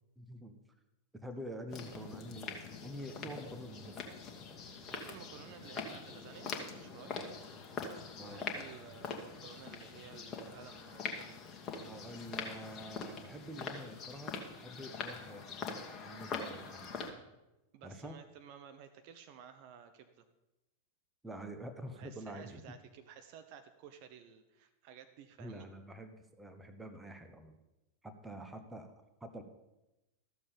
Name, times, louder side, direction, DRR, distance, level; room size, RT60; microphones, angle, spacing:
voice 1, 0.2-0.6 1.1-4.0 8.2-8.4 11.8-15.6 16.0-16.9 17.8-18.2 21.2-22.6 25.4-27.6 28.0-28.9 29.2-29.4, equal, 10° right, 7 dB, 1.0 m, -47 dB
sound 1, 1.7-17.1, left 4 dB, 30° left, 1.4 m, -43 dB
voice 2, 4.9-7.3 8.2-11.4 17.7-20.2 21.9-25.7, right 8 dB, 45° right, 8 dB, 0.7 m, -54 dB
13.5 x 7.0 x 5.2 m, 0.99 s
figure-of-eight pair, 90°, 0 cm